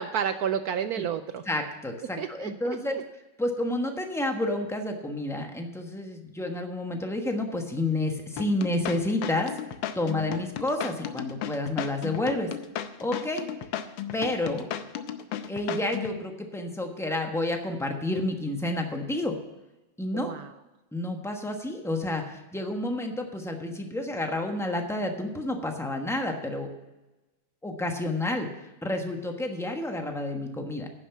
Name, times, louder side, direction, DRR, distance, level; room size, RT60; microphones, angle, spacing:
voice 1, 0.0-1.4 2.2-3.0 20.1-20.5, right 8 dB, 70° right, 10 dB, 0.9 m, -31 dB
voice 2, 1.5-3.0 3.4-9.5 9.9-12.5 13.0-13.5 14.1-14.7 15.5-19.3 20.0-20.3 20.9-26.7 27.6-28.5 28.8-30.9, left 1 dB, ahead, 3 dB, 0.9 m, -30 dB
sound 1, 8.4-16.2, left 10 dB, 90° left, 1.5 m, -34 dB
10.5 x 7.3 x 7.0 m, 1.0 s
omnidirectional pair, 2.0 m